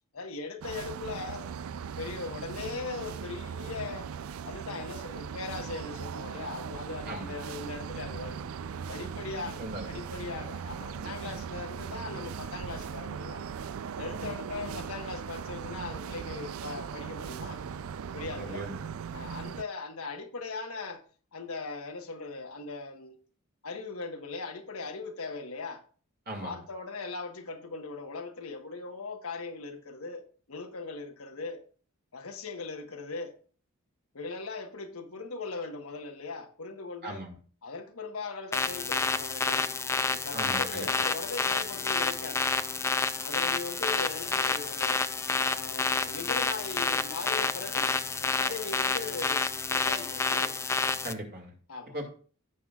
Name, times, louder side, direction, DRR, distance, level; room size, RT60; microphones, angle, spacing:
voice 1, 0.1-1.5 2.0-4.1 4.4-8.5 8.9-13.4 14.0-17.6 18.1-18.7 19.1-21.0 21.3-23.2 23.6-25.8 26.4-31.6 32.1-33.3 34.1-37.2 37.6-39.7 40.1-42.5 43.2-45.0 45.4-48.0 48.4-50.5 51.7-52.0, left 4 dB, 85° left, 1.2 m, -39 dB
sound 1, 0.6-19.6, right 7 dB, 75° right, 0.4 m, -39 dB
voice 2, 9.4-9.9 14.1-14.3 18.4-18.8 26.3-26.6 37.0-37.3 40.3-40.9 51.0-51.5 51.9-52.1, right 1 dB, 50° right, 2.3 m, -38 dB
sound 2, 38.5-51.1, left 4 dB, 15° left, 0.3 m, -29 dB
16.0 x 5.7 x 2.4 m
head